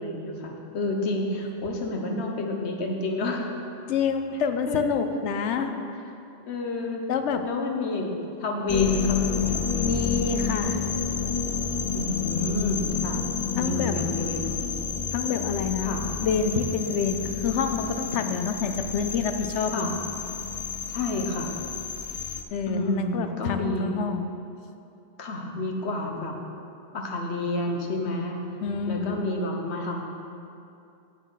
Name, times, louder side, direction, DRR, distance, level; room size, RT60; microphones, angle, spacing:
voice 1, 0.0-3.5 4.7-5.1 5.6-5.8 6.4-7.1 7.4-10.0 11.9-14.6 15.8-16.0 19.7-19.9 20.9-21.5 22.7-24.0 25.2-26.4 26.9-28.4 28.9-30.1, left 2 dB, 70° left, 1 dB, 1.3 m, -30 dB
voice 2, 3.9-5.7 7.1-7.4 9.8-11.0 13.6-13.9 15.1-16.0 16.2-19.9 22.5-24.3 28.6-29.3, left 6 dB, 90° left, 8 dB, 0.9 m, -27 dB
sound 1, 8.7-22.4, left 6 dB, 55° left, 0.4 m, -29 dB
9.3 x 8.0 x 4.0 m, 2.6 s
omnidirectional pair, 1.2 m